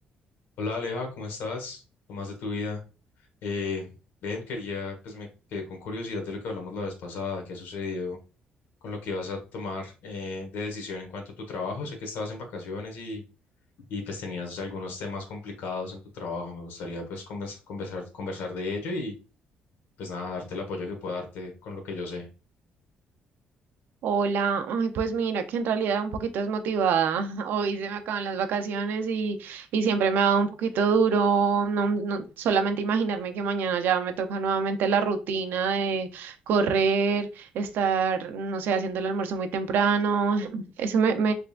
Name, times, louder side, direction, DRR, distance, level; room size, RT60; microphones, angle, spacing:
voice 1, 0.6-1.8 2.1-2.8 3.4-3.9 4.2-8.2 8.8-13.2 13.9-19.1 20.0-22.3, left 3 dB, 85° left, 1.4 m, -34 dB
voice 2, 24.0-41.3, right 5 dB, 75° right, 0.6 m, -25 dB
3.7 x 3.3 x 2.4 m
cardioid pair, 135°, 3 cm